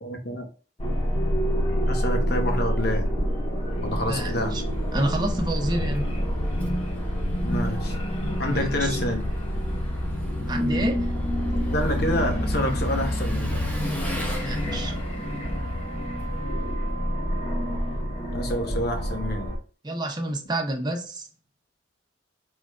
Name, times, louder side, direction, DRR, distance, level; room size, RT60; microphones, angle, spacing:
voice 1, 0.0-0.5 1.9-3.1 3.8-4.5 7.4-8.0 8.4-9.2 11.7-13.6 18.3-19.5, left 1 dB, 55° left, 1.0 m, -28 dB
sound 1, 0.8-19.6, equal, 30° left, 1.1 m, -27 dB
Engine, 3.8-17.3, equal, 10° left, 1.0 m, -42 dB
voice 2, 4.1-4.6 4.9-6.1 8.4-9.0 10.5-11.1 14.4-15.0 19.8-21.3, right 1 dB, 20° right, 0.9 m, -29 dB
4.8 x 3.7 x 2.3 m
head